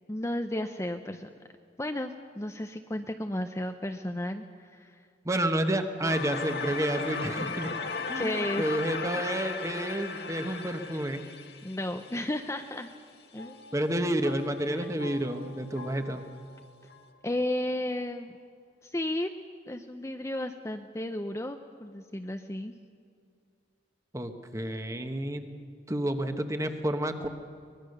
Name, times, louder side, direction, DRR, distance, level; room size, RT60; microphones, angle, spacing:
voice 1, 0.1-1.3 1.8-5.0 8.2-8.8 11.6-12.9 13.3-13.6 14.7-14.9 17.2-18.4 18.8-19.3 19.7-22.7, left 1 dB, 15° left, 6 dB, 0.6 m, -33 dB
voice 2, 5.2-7.7 8.1-11.2 13.7-16.2 24.1-25.4 25.9-27.3, right 1 dB, 15° right, 7 dB, 1.2 m, -30 dB
sound 1, 6.0-12.9, left 4 dB, 60° left, 1.7 m, -36 dB
sound 2, 10.9-17.8, left 3 dB, 85° left, 4.9 m, -51 dB
24.0 x 20.0 x 6.7 m, 2.2 s
head